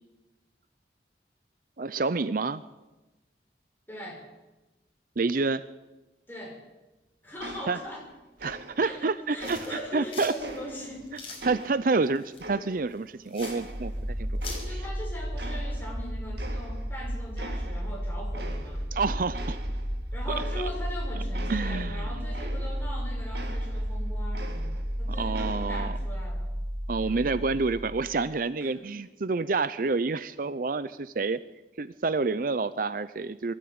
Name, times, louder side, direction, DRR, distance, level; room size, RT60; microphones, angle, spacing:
voice 1, 1.8-2.6 5.2-5.6 7.7-7.8 8.4-10.3 11.4-13.9 14.2-14.4 14.7-14.8 18.9-19.6 21.5-22.3 25.1-26.0 26.9-31.4 31.8-33.5, right 3 dB, 50° right, 15 dB, 0.6 m, -28 dB
voice 2, 3.9-4.2 6.3-6.6 7.2-8.0 8.8-11.1 14.7-18.8 20.1-26.5 27.0-27.4 28.6-29.0, left 1 dB, 10° left, -2 dB, 6.3 m, -40 dB
sound 1, 7.4-8.1 8.4-9.0 9.4-11.0 11.4-13.1 13.4-15.0 15.4-16.0 16.4-17.0 17.4-17.9 18.3-19.0 19.3-22.9 23.3-25.0 25.3-26.0, right 1 dB, 70° right, 2.2 m, -43 dB
sound 2, 9.4-14.6, left 4 dB, 30° left, 5.5 m, -44 dB
sound 3, 13.6-28.4, equal, 25° right, 2.5 m, -33 dB
22.0 x 13.5 x 8.8 m, 1.1 s
head